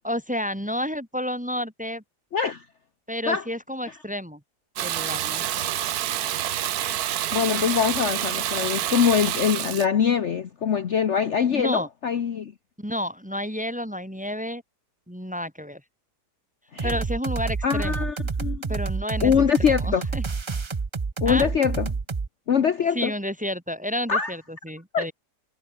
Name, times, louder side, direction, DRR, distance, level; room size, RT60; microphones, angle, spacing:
voice 1, 0.0-2.0 3.1-4.4 4.8-5.5 11.5-11.9 12.8-14.6 15.1-15.8 16.8-18.1 18.7-19.3 19.6-20.2 21.3-21.5 22.9-25.1, equal, 5° right, 2.2 m, -30 dB
voice 2, 2.3-2.6 3.3-3.4 7.3-12.5 16.7-17.0 17.6-18.7 19.2-20.1 21.2-21.9 22.5-23.1 24.1-24.3 24.9-25.1, left 7 dB, 50° left, 1.2 m, -23 dB
Water tap faucet / Bathtub (filling or washing), 4.8-9.9, right 12 dB, 70° right, 1.3 m, -27 dB
sound 1, 16.8-22.3, right 4 dB, 35° right, 0.4 m, -28 dB
omnidirectional pair, 1.8 m